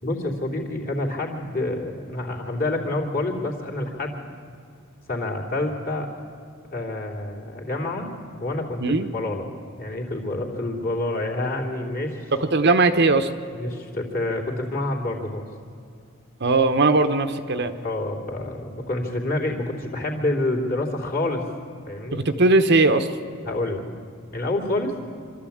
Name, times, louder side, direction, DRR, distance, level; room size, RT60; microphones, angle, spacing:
voice 1, 0.0-4.2 5.1-6.1 6.7-8.1 8.4-8.8 9.1-9.4 9.8-12.2 13.5-15.4 17.8-21.4 21.9-22.2 23.5-23.8 24.3-25.2, left 2 dB, 45° left, -1 dB, 3.0 m, -27 dB
voice 2, 12.4-13.3 16.4-17.7 22.1-23.1, right 3 dB, 55° right, 8 dB, 1.0 m, -19 dB
25.5 x 13.5 x 8.6 m, 2.4 s
head